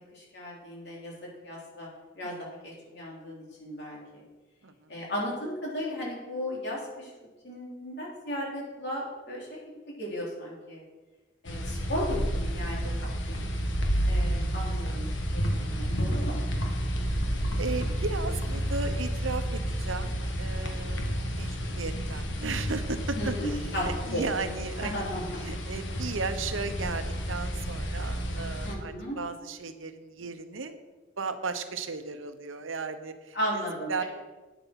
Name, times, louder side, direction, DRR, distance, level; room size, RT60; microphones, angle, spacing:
voice 1, 0.1-1.9 2.2-4.2 4.9-7.1 7.4-10.8 11.4-13.3 14.0-16.4 23.2-24.5 24.8-25.2 28.6-29.2 33.3-34.0, equal, 55° left, -4 dB, 3.3 m, -35 dB
voice 2, 4.6-4.9 13.3-13.8 17.6-25.1 25.4-30.8 31.2-33.6 33.9-34.0, right 4 dB, 90° right, 9 dB, 0.9 m, -36 dB
sound 1, 11.4-28.7, equal, 75° left, 1.3 m, -31 dB
9.4 x 8.0 x 5.8 m, 1.2 s
head